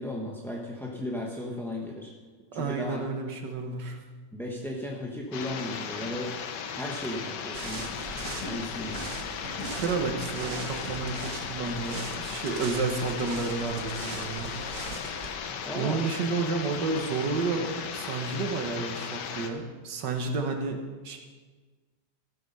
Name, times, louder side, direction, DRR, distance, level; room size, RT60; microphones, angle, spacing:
voice 1, 0.0-2.1 2.5-3.1 4.3-6.4 6.7-7.9 8.4-9.1 15.7-16.0, left 1 dB, ahead, -1 dB, 0.7 m, -35 dB
voice 2, 2.5-4.0 9.7-14.5 15.1-21.2, right 4 dB, 85° right, 4 dB, 1.9 m, -31 dB
sound 1, 5.3-19.5, left 7 dB, 85° left, 1.5 m, -36 dB
sound 2, 7.5-15.3, right 4 dB, 55° right, 1.4 m, -41 dB
sound 3, 7.7-12.4, left 1 dB, 55° left, 1.7 m, -43 dB
15.0 x 8.0 x 5.5 m, 1.4 s
omnidirectional pair, 1.8 m